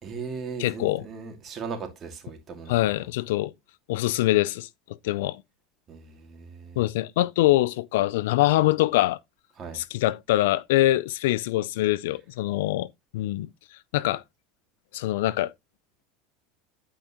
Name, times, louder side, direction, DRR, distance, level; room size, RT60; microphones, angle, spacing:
voice 1, 0.0-2.9 5.9-6.8 9.6-9.8, right 5 dB, 35° right, 2.6 m, -38 dB
voice 2, 0.6-1.0 2.7-3.5 3.9-4.7 5.0-5.4 6.8-9.2 9.7-13.5 13.9-14.2 14.9-15.5, left 16 dB, 80° left, 0.5 m, -24 dB
11.0 x 5.1 x 3.0 m
supercardioid pair, 125°, 0 cm